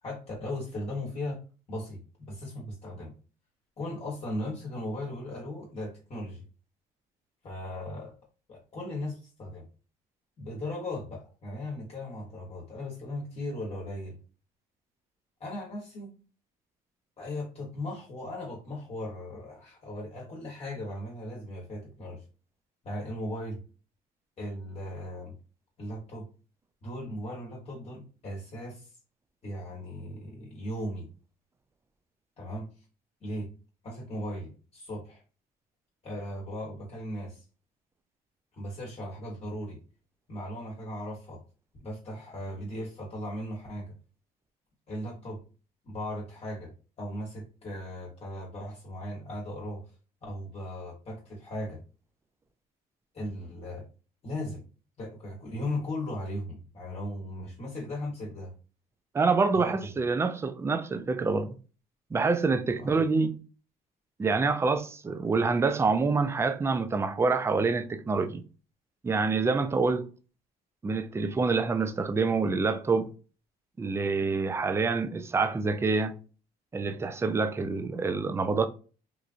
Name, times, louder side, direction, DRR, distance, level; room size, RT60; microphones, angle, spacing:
voice 1, 0.0-1.4 1.7-2.0 2.3-3.1 3.8-6.4 7.4-8.1 8.5-9.6 10.4-14.2 15.4-16.1 17.2-22.2 22.8-23.6 24.4-25.3 25.8-26.3 26.8-28.9 29.4-31.1 32.4-32.7 33.2-33.5 33.8-35.2 36.0-37.4 38.5-39.8 40.3-41.4 41.8-43.9 44.9-45.4 45.8-46.7 47.0-49.8 50.2-51.8 53.1-53.8 54.2-54.6 55.0-58.5 59.5-59.9 62.8-63.0, left 1 dB, 35° left, 1.1 m, -37 dB
voice 2, 59.1-61.6 62.1-63.4 64.2-68.4 69.0-70.0 70.8-73.1 73.8-76.1 76.7-78.7, right 4 dB, 15° right, 0.3 m, -26 dB
3.0 x 2.4 x 2.5 m
cardioid pair, 110°, 17 cm